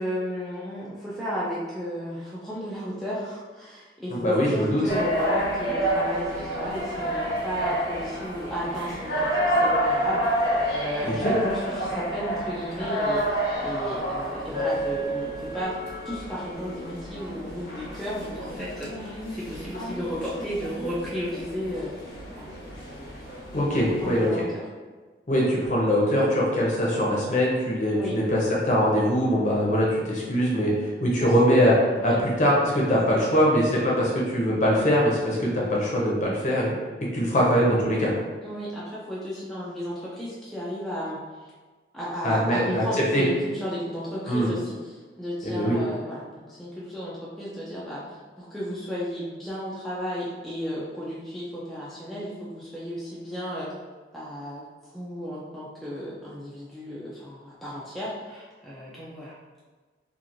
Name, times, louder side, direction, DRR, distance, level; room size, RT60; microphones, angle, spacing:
voice 1, 0.0-10.2 10.7-15.8 16.1-21.9 22.3-22.4 23.5-24.7 28.0-28.2 31.2-31.3 32.0-32.2 33.1-33.4 38.4-41.5 41.9-53.7 54.1-54.6 54.9-59.4, equal, ahead, -8 dB, 0.4 m, -33 dB
voice 2, 4.1-4.8 11.0-11.4 23.5-24.3 25.3-30.7 31.0-31.7 32.0-32.1 32.4-36.7 37.1-38.1 42.2-42.8 43.1-43.2 44.3-44.5 45.4-45.8, equal, 40° left, -4 dB, 0.7 m, -22 dB
sound 1, 4.9-24.3, right 1 dB, 90° left, 0.9 m, -29 dB
2.9 x 2.5 x 2.5 m, 1.4 s
head